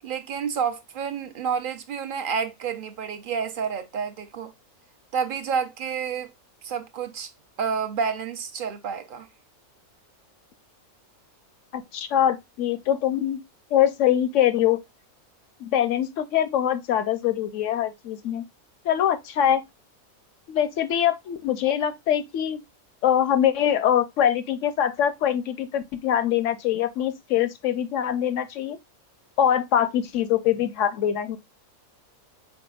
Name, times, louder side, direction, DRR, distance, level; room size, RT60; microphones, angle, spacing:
voice 1, 0.0-4.5 5.1-6.3 6.6-7.3 7.6-9.3, right 6 dB, 50° right, 0.7 m, -29 dB
voice 2, 11.7-13.4 13.7-14.8 15.6-18.4 18.8-19.6 20.5-22.6 23.0-28.8 29.4-31.4, left 10 dB, 70° left, 0.8 m, -23 dB
5.1 x 4.5 x 2.3 m
omnidirectional pair, 1.5 m